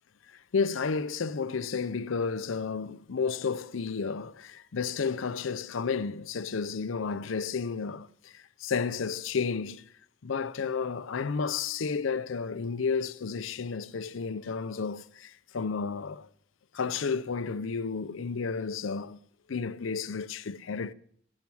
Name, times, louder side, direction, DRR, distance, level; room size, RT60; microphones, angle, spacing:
voice 1, 0.5-9.9 10.2-16.3 16.7-19.2 19.5-20.9, left 5 dB, 70° left, 0.5 m, -32 dB
16.5 x 6.2 x 6.9 m
head